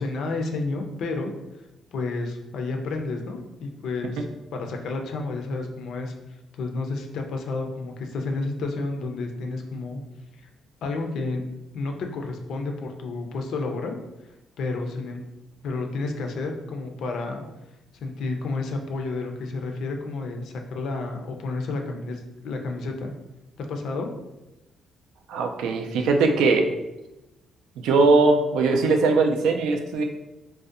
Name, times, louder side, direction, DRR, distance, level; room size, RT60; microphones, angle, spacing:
voice 1, 0.0-1.3 1.9-4.3 4.5-6.1 6.6-10.0 10.4-10.5 10.8-11.4 11.7-14.0 14.6-15.2 15.6-17.4 18.0-23.1 23.6-24.1, left 3 dB, 75° left, 4 dB, 0.4 m, -30 dB
voice 2, 25.3-26.7 27.8-30.0, right 3 dB, 90° right, 4 dB, 0.3 m, -20 dB
2.5 x 2.1 x 2.4 m, 0.97 s
cardioid pair, 90°, 0 cm